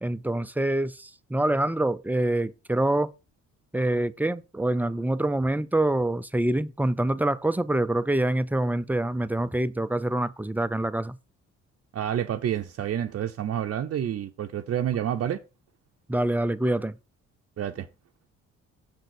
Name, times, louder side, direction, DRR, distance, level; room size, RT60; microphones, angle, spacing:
voice 1, 0.0-3.1 3.7-11.2 16.1-17.0, right 1 dB, 5° right, 0.4 m, -26 dB
voice 2, 11.9-15.4 17.6-17.9, right 10 dB, 50° right, 0.6 m, -29 dB
6.8 x 4.0 x 6.3 m
cardioid pair, 90°, 30 cm